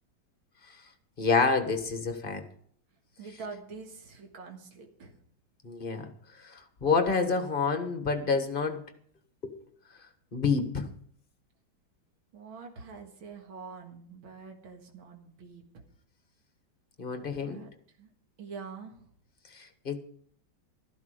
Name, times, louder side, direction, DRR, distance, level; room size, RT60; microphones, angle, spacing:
voice 1, 1.2-2.4 5.6-6.1 6.8-8.8 9.4-9.5 10.3-10.9 17.0-17.6 19.6-20.0, left 4 dB, 30° left, 1.4 m, -28 dB
voice 2, 3.2-5.2 12.3-15.6 17.2-17.7 18.0-18.1 18.4-19.1, right 5 dB, 90° right, 2.5 m, -45 dB
13.5 x 12.0 x 5.0 m
omnidirectional pair, 2.2 m